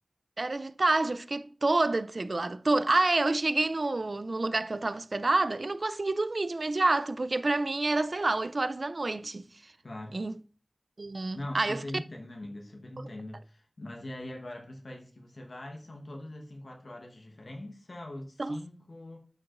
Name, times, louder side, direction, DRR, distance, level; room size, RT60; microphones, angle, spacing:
voice 1, 0.4-9.5 10.1-10.3 11.0-11.8 18.4-18.6, right 2 dB, 70° right, 0.4 m, -28 dB
voice 2, 9.8-10.2 11.3-19.2, left 1 dB, 85° left, 1.2 m, -42 dB
11.0 x 4.7 x 2.5 m
wide cardioid pair, 50°, 0 cm